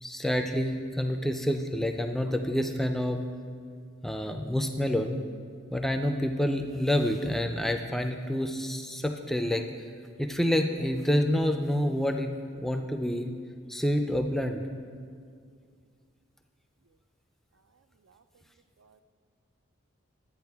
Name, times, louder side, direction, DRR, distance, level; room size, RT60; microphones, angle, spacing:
voice 1, 0.0-3.2 4.0-5.2 5.7-9.6 10.2-13.3 13.7-14.6, left 1 dB, ahead, 5 dB, 0.3 m, -28 dB
voice 2, 17.7-18.4 18.8-19.0, right 5 dB, 75° right, 10 dB, 0.4 m, -64 dB
12.0 x 8.7 x 3.5 m, 2.1 s
head